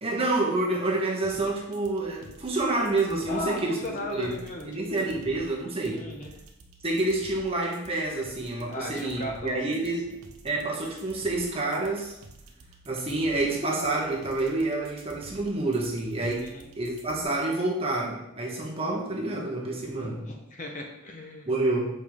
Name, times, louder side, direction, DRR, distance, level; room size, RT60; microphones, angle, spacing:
voice 1, 0.0-6.0 6.8-10.2 10.4-12.1 12.8-16.5 16.8-20.2 21.5-21.9, right 2 dB, 25° right, -2 dB, 1.1 m, -28 dB
sound 1, 1.2-17.2, right 2 dB, 75° right, 0.9 m, -50 dB
voice 2, 3.3-5.1 5.9-6.3 8.7-10.2 16.4-16.7 20.0-21.5, left 1 dB, 35° left, 2 dB, 0.8 m, -37 dB
7.1 x 4.4 x 3.6 m, 0.88 s
head